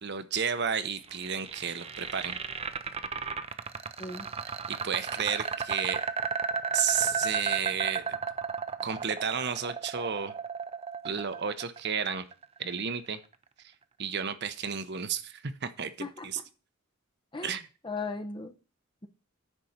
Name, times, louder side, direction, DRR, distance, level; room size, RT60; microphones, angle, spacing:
voice 1, 0.0-2.4 4.7-6.1 6.7-8.2 8.8-10.3 11.0-12.3 12.6-13.2 14.0-16.4 17.4-17.7, right 7 dB, 55° right, 11 dB, 0.9 m, -32 dB
sound 1, 0.8-12.9, right 5 dB, 30° right, 0.6 m, -34 dB
voice 2, 17.8-18.5, left 3 dB, 25° left, 7 dB, 1.0 m, -36 dB
9.8 x 4.3 x 6.6 m, 0.34 s
head